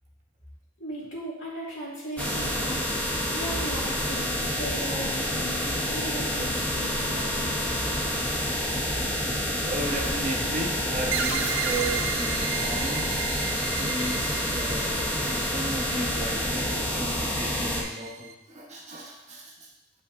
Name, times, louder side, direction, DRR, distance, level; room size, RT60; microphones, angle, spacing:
voice 1, 0.8-7.6, equal, 60° left, -6 dB, 2.5 m, -37 dB
sound 1, 2.2-17.8, equal, 10° left, 1.0 m, -28 dB
voice 2, 9.6-13.3 13.6-19.7, right 1 dB, 35° right, -1 dB, 1.1 m, -35 dB
sound 2, 11.1-18.3, right 8 dB, 65° right, 0.6 m, -35 dB
8.4 x 5.5 x 2.7 m, 0.84 s
head